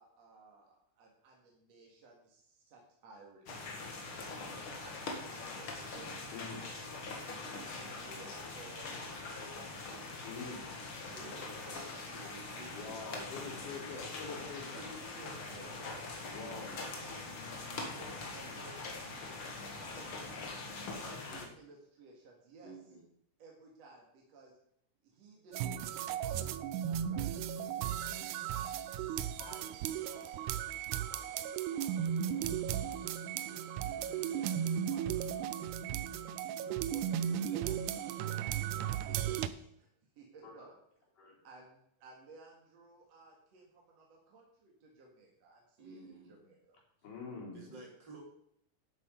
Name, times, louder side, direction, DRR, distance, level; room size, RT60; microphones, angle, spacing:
voice 1, 0.0-3.7 4.8-6.6 7.7-9.9 10.5-12.5 13.9-14.1 14.7-16.3 16.7-20.7 21.5-22.7 23.4-24.5 25.0-28.9 29.4-29.7 30.0-30.5 30.9-33.0 33.4-35.2 36.8-39.9 40.2-40.7 41.4-46.8, right 2 dB, 60° right, -1 dB, 2.9 m, -57 dB
sound 1, 3.5-21.5, left 3 dB, 50° left, 2.3 m, -43 dB
voice 2, 10.2-10.6 12.7-14.8 16.3-16.7 29.4-29.6 35.7-36.1 36.5-36.6 40.4-40.7 41.2-41.4 47.0-47.6, left 4 dB, 85° left, -3 dB, 5.2 m, -45 dB
voice 3, 12.1-13.9 15.5-15.9 16.4-16.8 21.0-21.6 22.6-23.0 45.8-46.3 47.5-48.2, right 2 dB, 35° right, -1 dB, 3.1 m, -53 dB
sound 2, 25.5-39.5, right 9 dB, 80° right, 2.0 m, -36 dB
11.5 x 8.1 x 5.1 m, 0.73 s
omnidirectional pair, 3.6 m